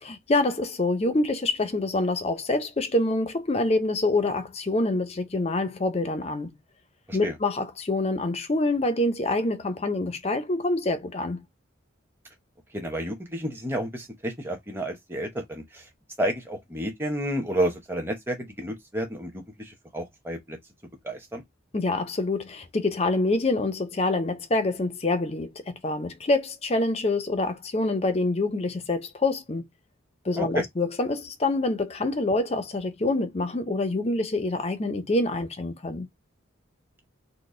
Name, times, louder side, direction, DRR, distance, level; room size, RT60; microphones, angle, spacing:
voice 1, 0.0-6.6 7.1-11.4 21.7-29.6 30.2-36.1, left 2 dB, 30° left, 0.5 m, -26 dB
voice 2, 12.7-15.8 16.2-20.6 21.0-21.4 30.4-30.6, right 1 dB, 10° right, 0.8 m, -31 dB
4.1 x 2.1 x 3.1 m
head